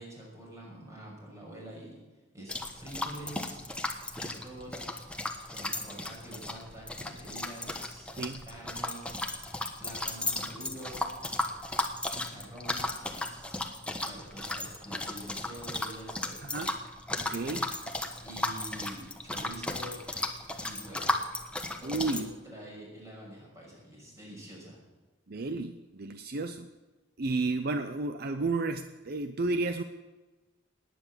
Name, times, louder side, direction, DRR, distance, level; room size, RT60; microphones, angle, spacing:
voice 1, 0.0-2.0 2.3-3.7 4.1-4.9 5.5-8.1 8.4-9.1 9.8-11.0 12.1-13.7 14.0-16.4 18.2-20.0 20.6-21.2 21.8-24.8, right 1 dB, 15° right, -3 dB, 6.4 m, -46 dB
sound 1, 2.5-22.2, left 2 dB, 5° left, 1.2 m, -35 dB
voice 2, 16.4-16.7 17.2-17.7 21.8-22.3 25.3-26.7 27.2-29.8, right 3 dB, 55° right, 9 dB, 0.7 m, -32 dB
19.0 x 9.5 x 7.4 m, 1.2 s
head